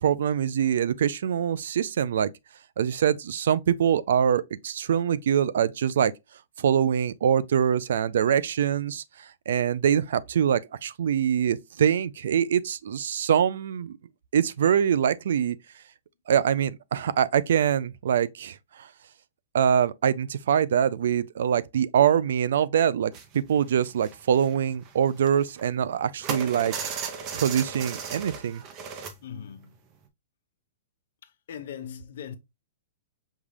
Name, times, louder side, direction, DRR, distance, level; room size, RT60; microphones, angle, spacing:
voice 1, 0.0-2.3 2.8-6.1 6.6-14.0 14.3-15.6 16.3-18.9 19.5-26.9 27.3-28.6, right 8 dB, 70° right, 0.4 m, -24 dB
sound 1, 23.1-23.3 23.6-25.9 26.2-29.1 29.6-29.8 30.1-30.2, right 6 dB, 30° right, 0.6 m, -36 dB
voice 2, 29.2-29.8 31.2-32.4, left 8 dB, 65° left, 0.7 m, -40 dB
5.4 x 2.3 x 3.2 m
hypercardioid pair, 145°, 0 cm